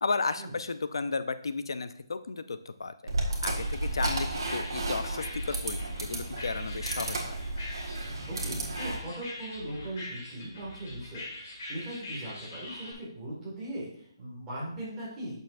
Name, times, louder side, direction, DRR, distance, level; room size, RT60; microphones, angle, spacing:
voice 1, 0.0-3.1 3.4-7.4, left 4 dB, 65° left, 12 dB, 0.5 m, -34 dB
sound 1, 3.1-9.0, right 2 dB, 65° right, 1.7 m, -33 dB
sound 2, 3.4-12.9, left 1 dB, 30° left, 1.5 m, -43 dB
voice 2, 8.3-15.4, right 1 dB, 10° right, -8 dB, 1.9 m, -39 dB
8.1 x 6.6 x 2.5 m, 0.63 s
hypercardioid pair, 180°, 3 cm